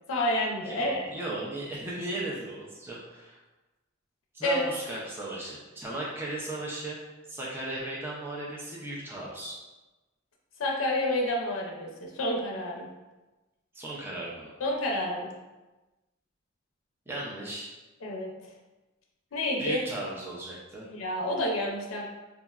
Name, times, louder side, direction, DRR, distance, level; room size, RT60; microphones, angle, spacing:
voice 1, 0.1-1.0 4.4-4.7 10.6-12.9 14.6-15.3 18.0-18.3 19.3-19.8 20.9-22.1, left 1 dB, 80° left, 0 dB, 0.5 m, -29 dB
voice 2, 0.6-3.4 4.3-7.0 7.3-9.6 13.7-14.5 17.1-17.7 19.6-20.9, right 1 dB, 10° right, -5 dB, 0.4 m, -36 dB
3.5 x 2.0 x 2.3 m, 1.1 s
head